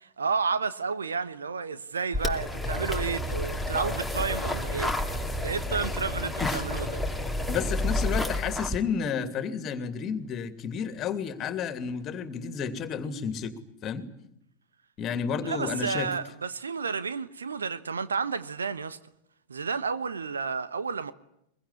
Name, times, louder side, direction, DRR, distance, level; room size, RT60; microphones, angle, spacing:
voice 1, 0.0-7.0 15.4-19.0 19.5-21.1, right 5 dB, 70° right, 1.2 m, -31 dB
sound 1, 2.1-8.8, left 1 dB, ahead, 2.5 m, -30 dB
voice 2, 7.5-13.5 13.8-14.0 15.0-16.1, left 7 dB, 30° left, 2.7 m, -31 dB
23.0 x 22.5 x 9.9 m
figure-of-eight pair, 90°, 0 cm